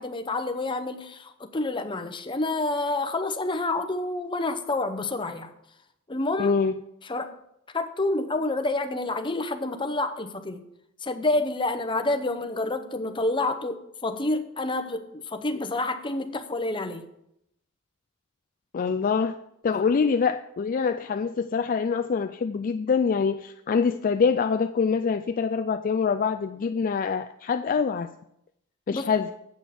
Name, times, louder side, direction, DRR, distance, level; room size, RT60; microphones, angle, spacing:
voice 1, 0.0-5.5 6.1-6.5 7.0-7.3 7.7-10.6 11.0-17.0 19.7-19.8 28.9-29.1, left 2 dB, 25° left, 8 dB, 0.8 m, -28 dB
voice 2, 6.4-6.7 18.7-19.4 19.6-28.1 28.9-29.3, left 5 dB, 40° left, 7 dB, 0.3 m, -25 dB
8.4 x 6.2 x 7.7 m, 0.78 s
head